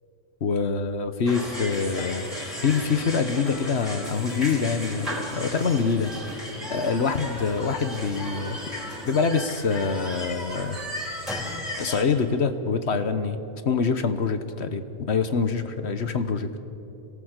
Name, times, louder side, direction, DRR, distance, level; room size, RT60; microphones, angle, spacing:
voice 1, 0.4-2.2 2.6-6.1 6.7-8.6 9.0-10.8 11.1-11.3 11.8-13.4 13.6-16.5, left 5 dB, 70° left, 10 dB, 1.4 m, -25 dB
sound 1, 1.3-12.0, equal, ahead, 4.8 m, -35 dB
26.0 x 18.0 x 8.1 m, 2.9 s
omnidirectional pair, 1.1 m